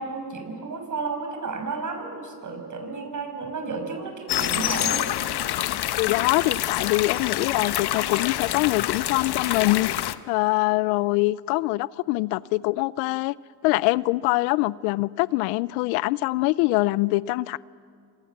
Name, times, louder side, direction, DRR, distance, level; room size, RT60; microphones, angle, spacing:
voice 1, 0.0-5.0, right 4 dB, 40° right, 6.2 m, -32 dB
sound 1, 4.3-10.1, left 13 dB, 55° left, 1.1 m, -27 dB
voice 2, 6.0-13.3 13.6-17.6, left 20 dB, 85° left, 0.7 m, -24 dB
28.5 x 26.5 x 7.3 m
supercardioid pair, 80°, 48 cm